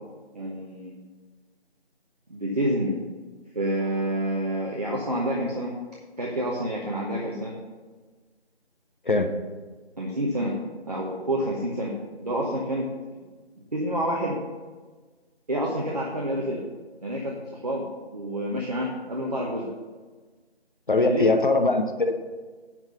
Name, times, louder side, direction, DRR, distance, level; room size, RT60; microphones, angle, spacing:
voice 1, 0.3-0.9 2.3-3.0 3.5-5.8 6.2-7.5 10.0-10.6 10.8-12.9 13.7-14.4 15.5-16.6 17.0-19.7 21.0-21.4, right 1 dB, 40° right, -2 dB, 1.0 m, -28 dB
voice 2, 9.0-9.4 20.9-22.1, left 3 dB, 50° left, 6 dB, 0.8 m, -22 dB
10.5 x 4.0 x 6.7 m, 1.4 s
figure-of-eight pair, 170°, 32 cm